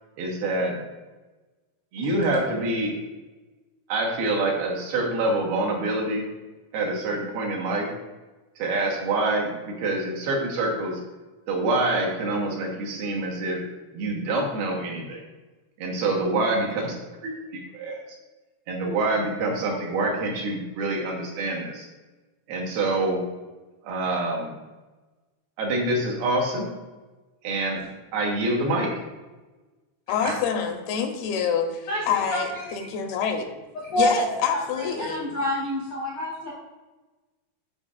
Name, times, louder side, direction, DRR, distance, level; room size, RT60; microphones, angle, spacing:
voice 1, 0.2-0.8 1.9-2.9 3.9-6.2 6.7-7.9 8.6-11.0 11.5-13.6 13.9-15.2 15.8-16.9 17.2-18.0 18.7-21.9 22.5-23.2 23.8-24.6 25.6-26.7 27.4-27.8 28.1-29.0, right 2 dB, 80° right, -1 dB, 3.0 m, -26 dB
voice 2, 30.1-33.5 34.0-35.3, left 7 dB, 85° left, 5 dB, 2.6 m, -26 dB
voice 3, 31.9-32.9 33.8-34.1 34.7-36.5, left 1 dB, 70° left, -6 dB, 1.0 m, -28 dB
11.0 x 4.3 x 2.4 m, 1.2 s
omnidirectional pair, 4.4 m